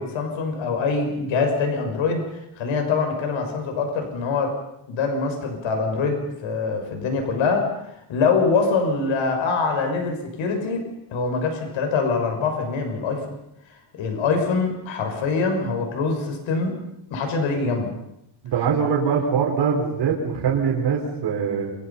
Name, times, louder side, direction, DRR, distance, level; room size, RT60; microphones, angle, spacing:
voice 1, 0.0-4.5 4.9-7.7 8.1-10.8 11.1-13.2 14.0-16.8 17.1-17.9, left 4 dB, 70° left, 4 dB, 6.3 m, -24 dB
voice 2, 18.4-21.7, right 6 dB, 55° right, 0 dB, 5.1 m, -22 dB
28.0 x 25.5 x 5.7 m, 0.82 s
cardioid pair, 175°, 48 cm